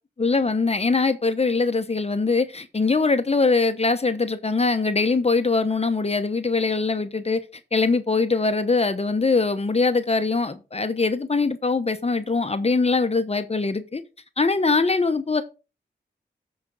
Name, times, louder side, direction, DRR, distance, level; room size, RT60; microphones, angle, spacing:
voice 1, 0.2-7.4 7.7-14.0 14.4-15.4, left 3 dB, 35° left, 1.0 m, -22 dB
13.5 x 5.2 x 3.8 m
cardioid pair, 55°, 18 cm